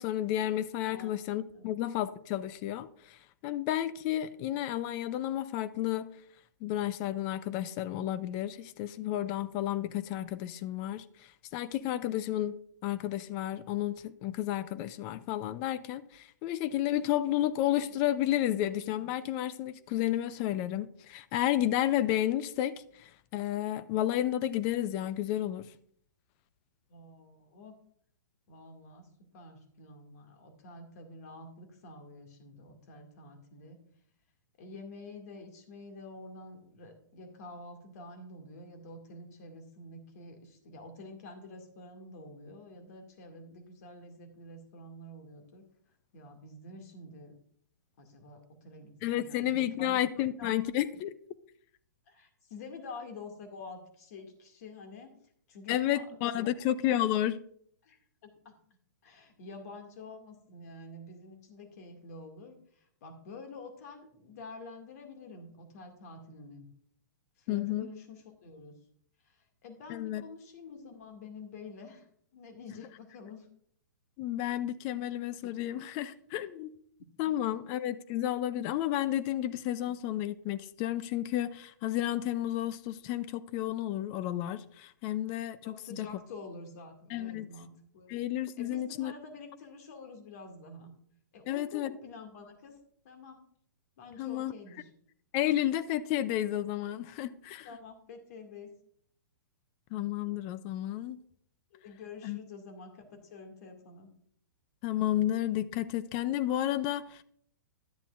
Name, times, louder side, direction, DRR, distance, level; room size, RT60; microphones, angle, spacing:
voice 1, 0.0-6.1 6.6-25.7 49.0-51.1 55.7-57.4 67.5-67.9 69.9-70.2 74.2-76.7 77.2-86.1 87.1-87.5 88.1-89.1 91.5-91.9 94.2-94.5 95.3-97.7 99.9-101.2 102.2-102.4 104.8-107.2, left 12 dB, 35° left, 0.4 m, -32 dB
voice 2, 26.9-27.8 28.5-29.1 29.3-33.8 34.6-45.6 46.1-47.3 48.0-48.9 49.2-49.4 49.8-50.0 50.4-50.6 52.1-55.1 55.5-56.0 56.3-56.5 57.8-58.5 59.0-66.7 67.4-68.7 69.2-72.1 72.3-73.5 85.6-88.1 88.6-90.9 91.3-92.8 93.0-93.4 94.0-94.9 97.6-98.7 101.7-104.1, left 3 dB, 55° left, 2.2 m, -48 dB
11.5 x 9.8 x 2.5 m
hypercardioid pair, 120°, 10 cm